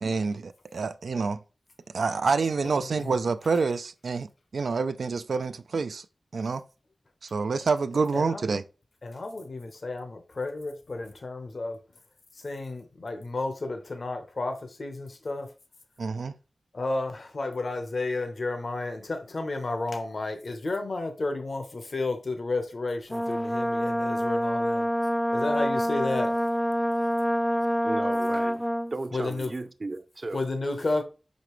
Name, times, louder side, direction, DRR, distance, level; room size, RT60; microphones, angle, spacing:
voice 1, 0.0-1.4 1.9-6.1 6.3-6.6 7.2-8.6 16.0-16.3, right 4 dB, 85° right, 0.4 m, -27 dB
voice 2, 8.1-8.4 9.0-11.8 12.4-15.5 16.7-24.9 25.3-26.3 28.3-28.4 29.1-29.5 30.3-31.0, left 2 dB, 60° left, 1.0 m, -32 dB
Brass instrument, 23.1-28.9, equal, ahead, 0.4 m, -26 dB
voice 3, 27.8-28.6 28.9-30.4, right 2 dB, 45° right, 0.6 m, -35 dB
5.8 x 5.2 x 3.1 m
wide cardioid pair, 90°, 0 cm